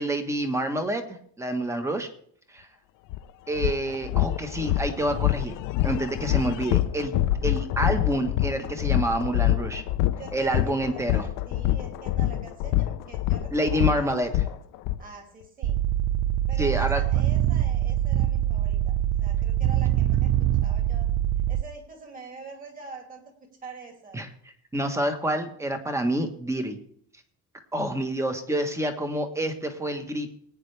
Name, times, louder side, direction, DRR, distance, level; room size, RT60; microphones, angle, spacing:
voice 1, 0.0-2.1 2.5-2.7 3.5-5.6 5.8-9.8 10.3-11.3 13.5-14.3 16.6-17.0 24.1-24.3 24.7-26.8 27.7-30.3, right 1 dB, 10° right, 7 dB, 1.2 m, -28 dB
sound 1, 3.1-3.2 3.6-15.0, left 14 dB, 75° left, 0.8 m, -25 dB
voice 2, 10.2-14.6 15.0-15.8 16.5-20.3 20.6-21.1 21.5-24.2, right 4 dB, 25° right, 3 dB, 2.6 m, -44 dB
sound 2, 15.6-21.6, right 12 dB, 50° right, 0.5 m, -24 dB
21.0 x 9.5 x 3.3 m, 0.63 s
cardioid pair, 175°, 32 cm